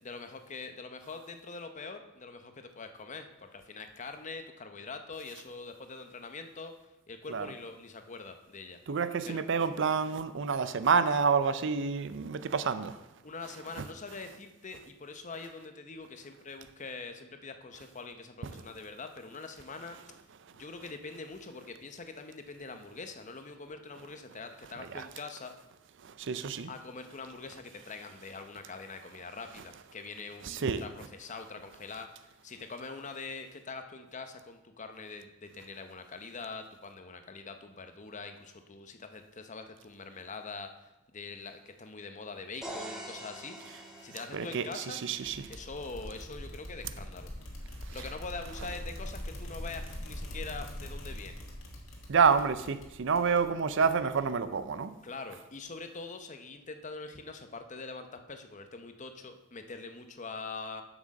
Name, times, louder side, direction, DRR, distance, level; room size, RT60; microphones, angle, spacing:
voice 1, 0.0-6.7 7.1-8.8 9.2-9.4 13.2-20.0 20.5-25.6 26.7-32.1 32.4-43.6 43.8-45.0 45.5-47.3 47.9-51.4 55.0-60.8, left 4 dB, 40° left, 0.8 m, -44 dB
voice 2, 8.9-12.9 26.2-26.7 30.5-30.8 44.3-44.6 45.0-45.4 52.1-54.9, right 5 dB, 65° right, 0.5 m, -28 dB
sound 1, 42.6-46.5, right 1 dB, 5° right, 1.4 m, -46 dB
sound 2, 45.2-54.5, equal, 70° left, 1.8 m, -43 dB
7.8 x 6.2 x 6.3 m
head